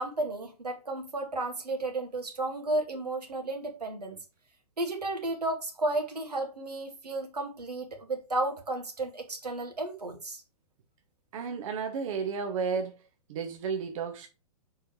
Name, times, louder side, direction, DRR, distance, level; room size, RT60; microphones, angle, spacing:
voice 1, 0.0-4.2 4.8-10.4, right 2 dB, 90° right, 2.2 m, -33 dB
voice 2, 11.3-13.0 13.3-14.3, right 5 dB, 55° right, 1.1 m, -32 dB
6.9 x 4.9 x 3.1 m
hypercardioid pair, 120°, 20 cm